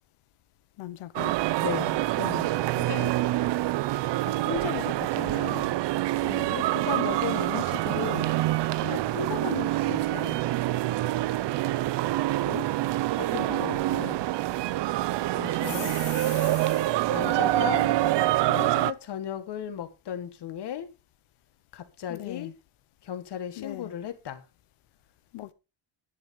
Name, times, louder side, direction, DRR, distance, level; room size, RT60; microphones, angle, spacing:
voice 1, 0.8-1.3 2.2-2.5 6.2-6.5 12.4-12.7 15.6-16.9 22.1-22.5 23.6-24.0 25.3-25.5, left 15 dB, 85° left, 1.0 m, -39 dB
sound 1, 1.2-18.9, right 15 dB, 60° right, 0.5 m, -26 dB
voice 2, 1.6-2.0 2.8-3.1 4.3-5.8 6.5-8.4 8.8-10.4 13.2-14.2 15.3-15.9 17.0-18.0 18.5-20.9 21.7-22.5 23.0-24.4, left 9 dB, 55° left, 1.6 m, -36 dB
11.5 x 10.0 x 3.8 m
cardioid pair, 160°, 48 cm